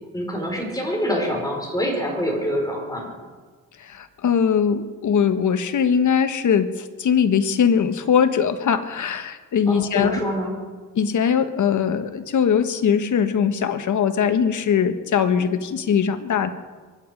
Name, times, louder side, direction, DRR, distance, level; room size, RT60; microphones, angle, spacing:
voice 1, 0.1-3.1 9.7-10.5, equal, 10° left, -1 dB, 5.2 m, -25 dB
voice 2, 3.8-10.2 10.9-16.5, left 7 dB, 65° left, 9 dB, 1.3 m, -21 dB
24.0 x 11.0 x 5.2 m, 1.4 s
cardioid pair, 85°, 32 cm